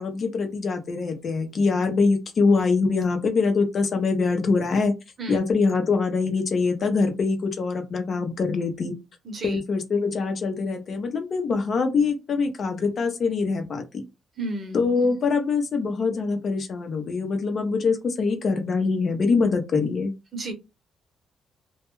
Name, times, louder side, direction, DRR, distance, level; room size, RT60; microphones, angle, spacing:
voice 1, 0.0-4.9 5.3-9.0 9.4-14.0 14.7-20.1, left 4 dB, 50° left, 6 dB, 0.6 m, -24 dB
voice 2, 9.3-9.6 14.4-14.9 20.3-20.5, right 2 dB, 40° right, 5 dB, 0.8 m, -32 dB
2.2 x 2.2 x 3.0 m, 0.25 s
cardioid pair, 90°, 0 cm